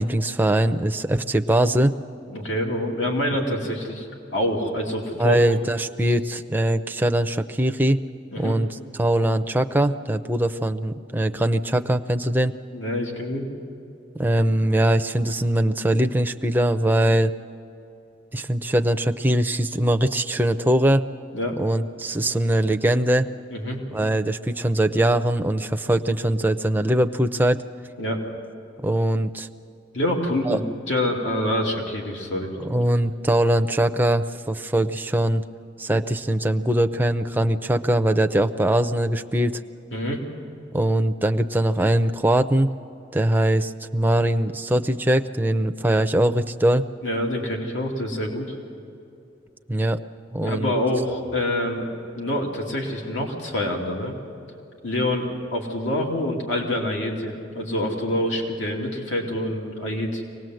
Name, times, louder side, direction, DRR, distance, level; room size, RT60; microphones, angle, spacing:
voice 1, 0.0-1.9 5.2-8.0 8.4-12.5 14.2-17.3 18.3-21.0 21.6-23.3 23.9-27.6 28.8-29.5 30.5-30.6 32.6-35.4 35.8-39.6 40.7-42.7 43.1-46.9 49.7-50.0 50.3-50.7, right 1 dB, 10° right, 6 dB, 0.5 m, -21 dB
voice 2, 2.3-4.1 4.3-5.4 8.3-8.6 12.7-13.5 21.3-21.6 23.5-23.8 28.0-28.2 29.9-32.6 39.9-40.2 47.0-48.5 50.4-51.9 52.2-54.1 54.8-60.2, left 1 dB, 80° left, 0 dB, 2.7 m, -26 dB
24.5 x 19.0 x 7.8 m, 2.7 s
head